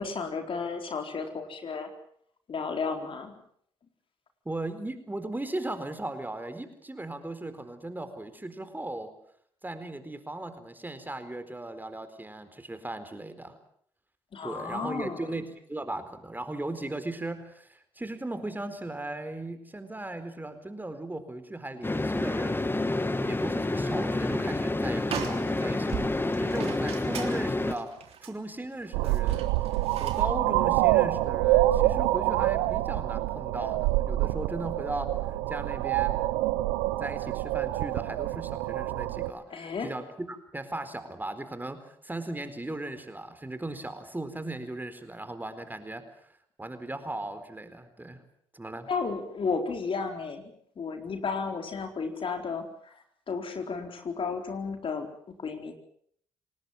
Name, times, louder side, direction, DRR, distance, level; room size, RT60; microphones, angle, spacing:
voice 1, 0.0-1.9 2.5-3.3 14.3-15.3 39.5-39.9 48.9-50.5 50.8-55.1 55.4-55.7, left 5 dB, 55° left, 5 dB, 4.2 m, -33 dB
voice 2, 4.4-9.1 9.6-13.6 14.4-15.4 15.7-22.7 23.3-27.9 28.2-29.6 30.0-36.2 37.0-46.0 46.6-48.2 48.5-48.9, right 2 dB, 15° right, 10 dB, 4.2 m, -37 dB
sound 1, 21.8-27.7, left 2 dB, 20° left, 1.9 m, -29 dB
sound 2, 23.9-24.2 24.5-24.6 25.0-30.3, right 7 dB, 65° right, 3.3 m, -40 dB
sound 3, 28.9-39.3, right 16 dB, 85° right, 0.9 m, -26 dB
27.5 x 19.0 x 7.6 m, 0.64 s
hypercardioid pair, 45°, 11 cm